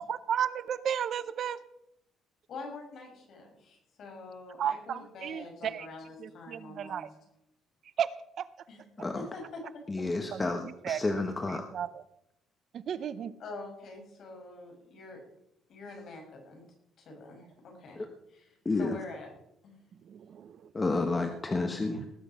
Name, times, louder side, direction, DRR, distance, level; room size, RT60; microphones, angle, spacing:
voice 1, 0.0-1.6 4.6-5.9 6.2-7.1 8.0-8.1 8.4-8.5 10.3-11.0 11.5-12.0 12.7-13.3 20.1-20.7 22.0-22.1, right 9 dB, 50° right, 15 dB, 0.7 m, -34 dB
voice 2, 2.5-7.0 8.7-8.8 9.1-10.3 12.9-13.0 13.4-15.2 15.7-16.6 17.0-18.0 18.3-19.3 19.6-19.7, left 3 dB, 50° left, 2 dB, 5.7 m, -45 dB
voice 3, 9.9-11.7 18.0-18.1 18.6-19.0 20.7-22.1, left 3 dB, 20° left, 5 dB, 1.2 m, -30 dB
19.0 x 9.8 x 5.7 m, 0.82 s
cardioid pair, 150°, 0 cm